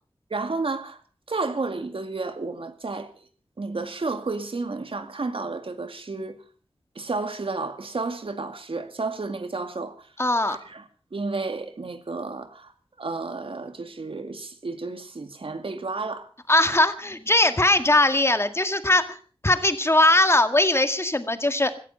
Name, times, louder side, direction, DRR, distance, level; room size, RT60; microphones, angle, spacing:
voice 1, 0.3-1.0 1.3-3.1 3.6-6.4 7.0-10.1 10.5-10.8 11.1-12.7 13.0-16.3, right 3 dB, 70° right, 2.2 m, -31 dB
voice 2, 10.2-10.6 16.5-19.2 19.4-21.7, left 2 dB, 25° left, 2.0 m, -20 dB
17.0 x 14.5 x 5.7 m
wide cardioid pair, 70°, 10 cm